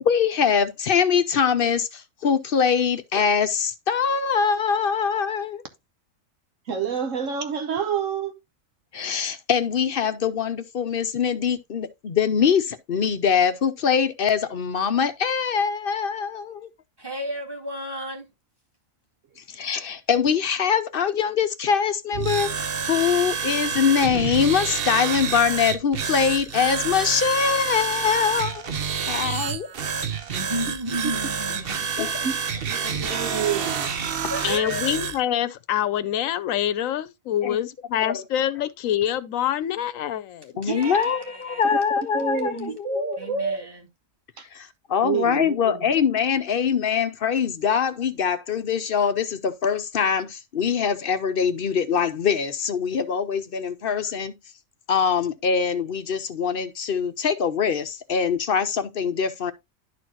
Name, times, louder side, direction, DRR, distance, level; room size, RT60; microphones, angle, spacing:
voice 1, 0.0-5.6 8.9-16.7 19.5-28.7 29.1-29.7 32.0-32.3 37.4-37.6 38.0-38.2 40.6-43.2 44.5-54.4 54.9-59.5, left 7 dB, 55° left, 0.7 m, -23 dB
voice 2, 6.7-8.3 31.0-31.1 32.2-32.4 32.7-33.9 42.1-43.7 44.4-44.5 45.0-45.8, right 6 dB, 70° right, 1.2 m, -28 dB
voice 3, 17.0-18.3 30.3-31.9 34.2-34.9 40.6-41.8 42.4-42.8 43.2-43.9, right 1 dB, 15° right, 2.0 m, -33 dB
sound 1, 22.1-35.2, right 6 dB, 50° right, 0.9 m, -28 dB
voice 4, 34.4-40.5, left 11 dB, 80° left, 1.1 m, -26 dB
11.5 x 4.4 x 2.9 m
omnidirectional pair, 1.4 m